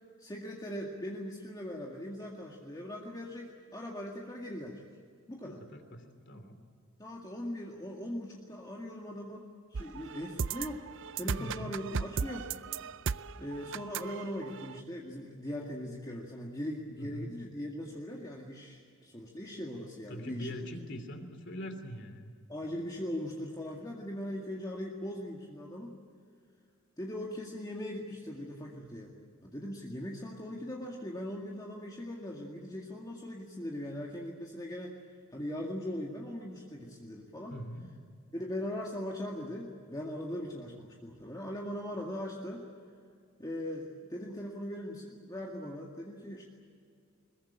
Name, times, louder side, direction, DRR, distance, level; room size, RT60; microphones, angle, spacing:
voice 1, 0.2-4.9 5.3-5.6 7.0-9.5 9.7-10.9 11.1-12.5 13.4-20.6 22.5-26.0 27.0-29.1 29.4-37.6 38.3-42.7 43.4-46.5, left 1 dB, 20° left, -1 dB, 2.1 m, -40 dB
voice 2, 5.4-6.6 11.4-11.7 17.0-17.3 20.1-22.3 37.5-37.8, equal, 55° left, 7 dB, 3.1 m, -42 dB
sound 1, 9.7-14.8, right 6 dB, 60° right, 0.5 m, -36 dB
22.0 x 21.5 x 8.9 m, 2.3 s
head